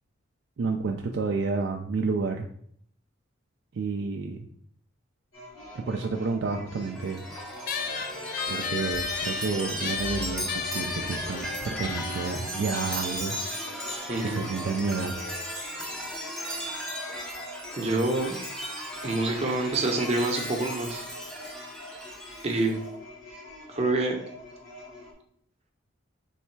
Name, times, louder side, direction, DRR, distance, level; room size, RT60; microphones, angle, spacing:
voice 1, 0.6-2.5 3.7-4.5 5.7-7.2 8.5-13.4 13.6-13.9 14.2-15.1, right 4 dB, 55° right, 2 dB, 0.3 m, -30 dB
sound 1, 5.3-25.1, left 1 dB, 85° left, 1.8 m, -46 dB
Chime, 6.9-22.8, equal, 5° left, 0.6 m, -36 dB
sound 2, 7.7-14.5, left 6 dB, 45° left, 0.4 m, -35 dB
voice 2, 14.1-14.4 17.8-18.4 19.0-21.0 22.4-22.8 23.7-24.2, right 2 dB, 30° right, 2 dB, 0.7 m, -26 dB
3.4 x 3.2 x 4.5 m, 0.65 s
head